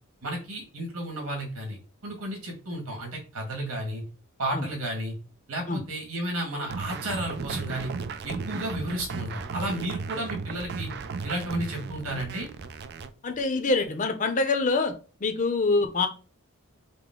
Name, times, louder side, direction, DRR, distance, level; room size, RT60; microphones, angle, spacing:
voice 1, 0.2-4.0 4.4-5.1 5.5-7.9 8.2-10.9 11.2-12.5, right 1 dB, 90° right, 1.8 m, -33 dB
sound 1, 6.7-13.1, right 4 dB, 50° right, 0.4 m, -35 dB
voice 2, 13.2-14.9 15.2-16.1, left 3 dB, 35° left, 0.6 m, -25 dB
5.1 x 2.1 x 3.7 m
head